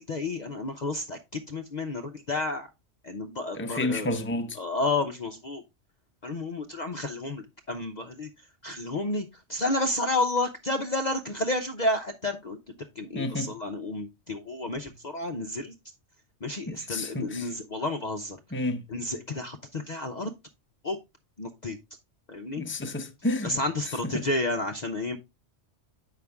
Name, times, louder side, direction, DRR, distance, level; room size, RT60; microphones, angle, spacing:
voice 1, 0.0-2.7 3.0-4.1 4.6-5.6 6.2-8.3 8.6-15.7 16.4-18.4 18.9-20.3 20.8-21.0 21.4-21.8 22.3-22.6 23.4-25.2, left 2 dB, 45° left, 0.7 m, -31 dB
voice 2, 3.5-4.6 13.1-13.6 16.7-17.5 18.5-18.8 22.6-23.6 24.0-24.2, left 2 dB, 10° left, 0.7 m, -30 dB
8.1 x 5.7 x 3.5 m
omnidirectional pair, 1.2 m